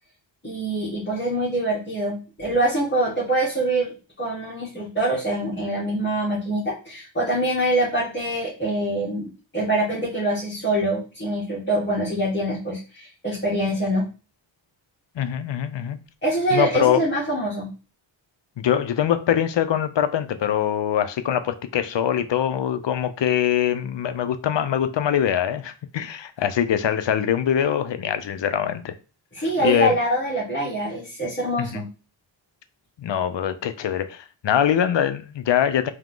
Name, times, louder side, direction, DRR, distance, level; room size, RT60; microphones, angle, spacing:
voice 1, 0.4-14.0 16.2-17.7 29.3-31.8, right 1 dB, 25° left, 1.6 m, -24 dB
voice 2, 15.2-16.0 16.5-17.0 18.6-28.9 29.6-29.9 31.6-31.9 33.0-35.9, left 9 dB, 65° left, 0.6 m, -23 dB
3.6 x 2.9 x 3.7 m
wide cardioid pair, 130°, 47 cm